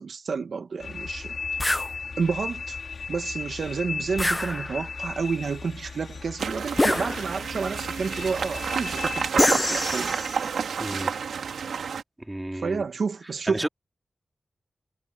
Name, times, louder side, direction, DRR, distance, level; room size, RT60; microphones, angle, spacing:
voice 1, 0.0-1.4 2.2-2.8 3.1-10.2 12.5-13.7, right 5 dB, 70° right, 1.7 m, -30 dB
sound 1, 0.8-9.3, left 4 dB, 65° left, 4.7 m, -36 dB
sound 2, 1.6-1.9 4.2-5.0 6.8-7.6 9.4-10.5, left 1 dB, 20° left, 0.7 m, -25 dB
sound 3, 6.4-12.0, right 6 dB, 90° right, 2.1 m, -30 dB
voice 2, 10.8-11.1 12.3-12.8 13.5-13.7, right 1 dB, 15° right, 3.5 m, -31 dB
cardioid pair, 50°, 0 cm